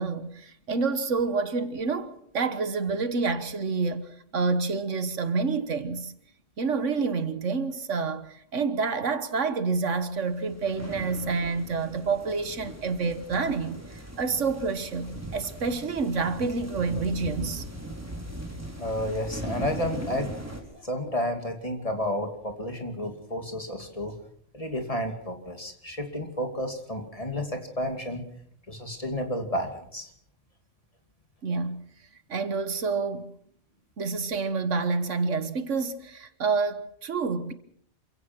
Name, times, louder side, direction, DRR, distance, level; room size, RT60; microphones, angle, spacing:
voice 1, 0.0-6.1 6.6-17.7 31.4-31.8 32.3-33.3 34.0-37.5, right 4 dB, 85° right, 1.8 m, -28 dB
sound 1, 10.2-20.6, right 1 dB, 10° right, 4.1 m, -39 dB
voice 2, 18.8-20.3 20.8-24.2 24.5-28.2 28.7-30.1, equal, 30° left, 2.8 m, -31 dB
27.0 x 16.5 x 6.1 m
omnidirectional pair, 1.2 m